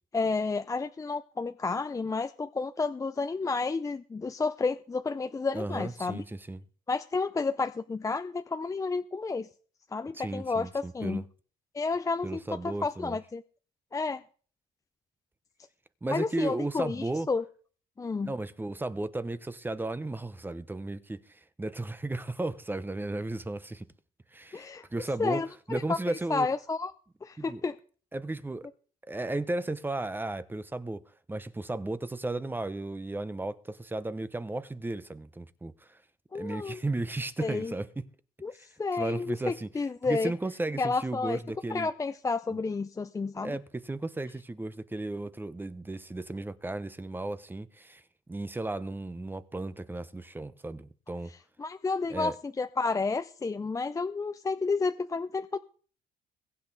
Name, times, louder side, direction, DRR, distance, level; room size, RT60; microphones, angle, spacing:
voice 1, 0.1-6.2 6.9-9.5 9.9-11.2 11.7-13.4 13.9-14.2 16.1-17.4 18.0-18.3 24.5-24.9 25.2-25.5 25.9-26.0 26.3-26.9 27.2-27.8 36.3-36.8 37.4-37.7 38.4-40.3 40.8-41.4 41.7-43.6 51.6-55.6, left 4 dB, 20° left, 0.6 m, -31 dB
voice 2, 5.5-6.6 10.1-11.2 12.2-13.2 16.0-17.3 18.2-23.9 24.3-25.4 25.7-26.5 27.4-27.6 28.1-28.7 29.0-36.0 36.3-38.1 38.5-38.7 38.9-39.7 40.0-41.9 42.5-42.6 43.4-48.0 48.3-51.3 52.1-52.3, right 2 dB, 10° right, 0.8 m, -34 dB
22.0 x 8.4 x 4.1 m
cardioid pair, 110°, 17 cm